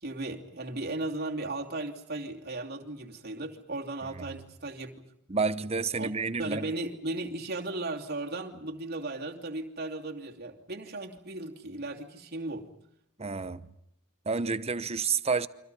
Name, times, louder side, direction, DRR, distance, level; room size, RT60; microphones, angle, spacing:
voice 1, 0.0-4.9 6.0-6.1 6.4-12.7, right 2 dB, 45° right, 2.8 m, -36 dB
voice 2, 5.3-6.7 13.2-13.7 14.3-15.5, right 4 dB, 30° right, 0.8 m, -29 dB
29.5 x 24.5 x 5.5 m
head